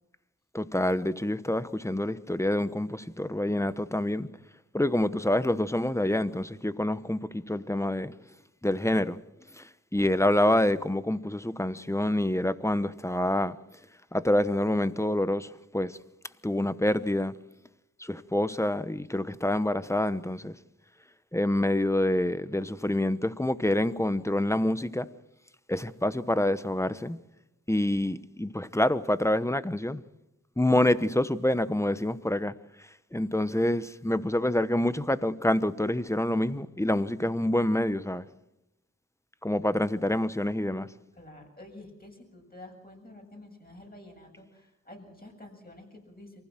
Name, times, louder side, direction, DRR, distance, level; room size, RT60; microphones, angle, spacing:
voice 1, 0.5-4.3 4.7-8.1 8.6-9.2 9.6-9.7 9.9-13.6 14.1-16.0 16.4-17.3 18.0-20.5 21.3-25.1 25.7-27.2 27.7-30.0 30.6-32.5 33.1-38.3 39.4-40.9, left 1 dB, 10° left, 1.0 m, -27 dB
voice 2, 41.1-46.4, left 1 dB, 30° left, 7.5 m, -49 dB
24.0 x 15.5 x 7.6 m
wide cardioid pair, 55°, 29 cm